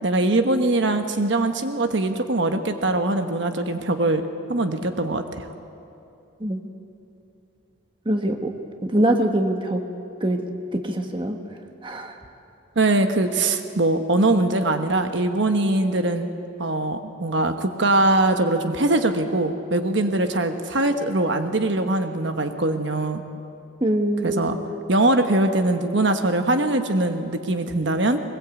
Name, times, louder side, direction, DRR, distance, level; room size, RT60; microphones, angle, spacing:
voice 1, 0.0-4.2 4.5-5.5 12.7-16.3 16.6-23.2 24.2-24.6 24.9-28.2, right 2 dB, 60° right, 7 dB, 1.2 m, -22 dB
voice 2, 8.0-8.5 8.8-9.8 10.2-11.4 11.8-12.2 23.8-24.4, right 1 dB, 25° right, 4 dB, 1.4 m, -23 dB
22.0 x 20.5 x 8.3 m, 2.8 s
head